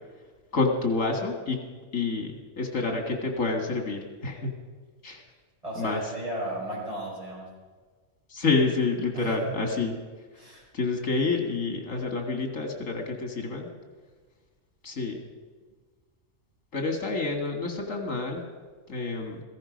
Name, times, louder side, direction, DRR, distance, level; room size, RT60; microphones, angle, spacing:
voice 1, 0.5-1.6 1.9-4.5 5.0-5.2 5.8-6.1 8.3-10.0 10.7-13.7 14.8-15.2 16.7-18.4 18.9-19.4, left 3 dB, 85° left, 3 dB, 2.3 m, -28 dB
voice 2, 5.6-7.5 9.1-9.5 10.4-10.6, right 1 dB, 30° right, -5 dB, 6.1 m, -34 dB
16.5 x 15.0 x 5.3 m, 1.5 s
omnidirectional pair, 1.3 m